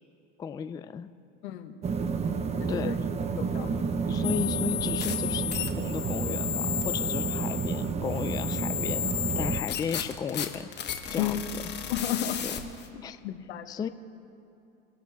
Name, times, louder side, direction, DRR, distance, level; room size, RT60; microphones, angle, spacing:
voice 1, 0.4-1.1 2.7-2.9 4.1-5.5 5.8-9.0 9.4-11.4 12.4-12.6 13.0-13.2 13.7-13.9, left 7 dB, 15° left, 11 dB, 0.3 m, -34 dB
voice 2, 1.4-1.7 2.6-3.0 3.3-3.9 11.2-11.4 11.9-12.4 12.9-13.9, left 11 dB, 85° left, 8 dB, 1.2 m, -33 dB
sound 1, 1.8-9.6, right 5 dB, 20° right, 0.7 m, -30 dB
sound 2, 4.2-12.9, left 10 dB, 35° left, 1.2 m, -33 dB
25.5 x 11.0 x 3.5 m, 2.8 s
supercardioid pair, 125°, 32 cm